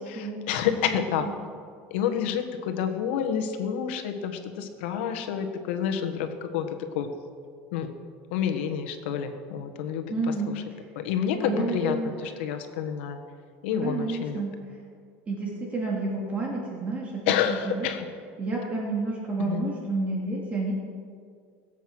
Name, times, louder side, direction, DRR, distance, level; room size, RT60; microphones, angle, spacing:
voice 1, 0.1-1.3 1.9-6.7 6.9-7.1 7.7-7.9 8.3-10.6 10.9-13.2 13.6-14.4 17.3-18.1 19.4-19.7, left 8 dB, 85° left, 6 dB, 1.6 m, -29 dB
voice 2, 0.8-1.3 10.1-10.6 11.3-12.1 13.8-14.5 15.3-17.9 18.4-20.7, right 3 dB, 20° right, -3 dB, 2.6 m, -30 dB
21.5 x 8.1 x 6.3 m, 2.2 s
cardioid pair, 155°, 6 cm